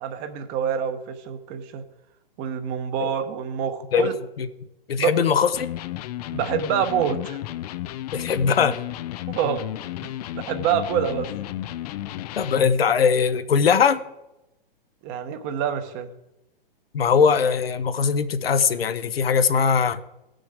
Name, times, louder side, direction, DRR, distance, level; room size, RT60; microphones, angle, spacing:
voice 1, 0.0-1.8 2.4-4.1 5.0-5.1 6.3-7.4 9.3-9.6 10.0-11.3 15.0-16.1, right 8 dB, 30° right, 8 dB, 1.1 m, -26 dB
voice 2, 4.9-5.7 8.1-8.7 12.4-14.0 16.9-20.0, left 6 dB, 85° left, 11 dB, 1.0 m, -20 dB
Electric guitar, 5.5-12.8, left 14 dB, 45° left, 0.5 m, -33 dB
16.5 x 6.3 x 5.0 m, 0.92 s
hypercardioid pair, 135°, 29 cm